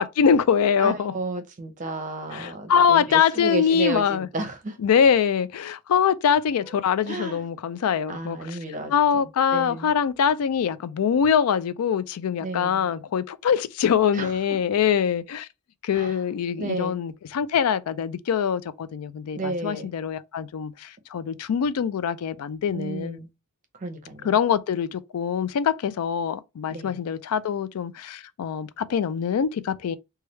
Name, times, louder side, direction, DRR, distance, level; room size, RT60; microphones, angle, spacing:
voice 1, 0.0-1.1 2.3-4.3 4.8-8.6 8.9-15.5 15.8-23.2 24.2-30.0, left 7 dB, 75° left, 0.3 m, -23 dB
voice 2, 0.8-4.8 6.6-6.8 7.1-7.4 8.1-9.9 12.4-12.9 14.1-14.6 15.9-16.2 16.6-17.0 19.3-19.9 22.7-23.3 23.8-24.3 26.7-27.0, right 2 dB, 35° right, 0.7 m, -32 dB
3.1 x 2.3 x 3.0 m
head